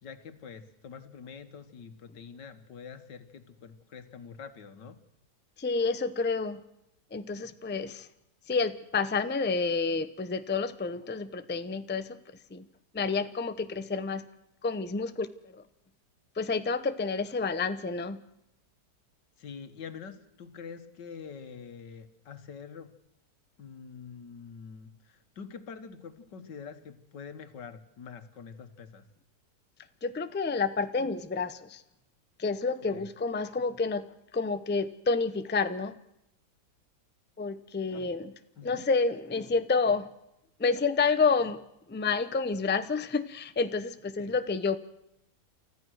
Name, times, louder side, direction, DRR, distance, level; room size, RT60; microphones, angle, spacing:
voice 1, 0.0-5.0 19.4-23.0 23.6-29.1 32.9-33.1 37.9-38.1 38.6-38.9 44.2-44.3, left 6 dB, 90° left, 10 dB, 2.1 m, -45 dB
voice 2, 5.6-6.6 7.1-8.1 8.5-12.2 12.5-12.7 12.9-14.2 14.6-15.3 15.5-15.6 16.4-18.2 30.0-31.8 32.4-34.1 34.3-36.0 37.4-38.3 38.6-40.1 40.6-41.6 41.9-44.8, left 4 dB, 10° left, 11 dB, 0.5 m, -29 dB
29.0 x 14.0 x 6.4 m, 0.83 s
omnidirectional pair, 1.8 m